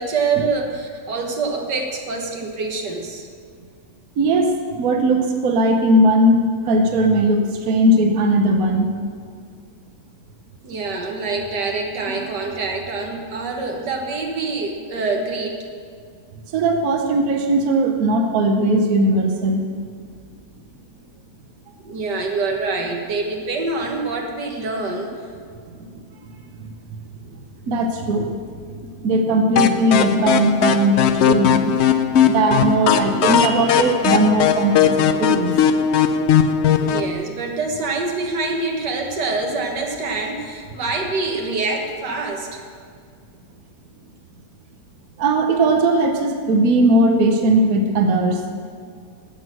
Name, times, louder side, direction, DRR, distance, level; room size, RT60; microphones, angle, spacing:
voice 1, 0.0-3.3 10.6-15.6 21.8-25.1 36.8-42.6, right 3 dB, 80° right, 2 dB, 2.0 m, -25 dB
voice 2, 4.2-8.9 12.1-12.2 16.5-19.6 26.6-26.7 27.7-28.3 28.7-31.8 32.1-35.5 45.2-48.4, right 1 dB, 60° right, 3 dB, 1.3 m, -18 dB
sound 1, 29.6-37.1, left 8 dB, 90° left, 0.5 m, -18 dB
16.5 x 6.3 x 6.1 m, 2.1 s
omnidirectional pair, 1.8 m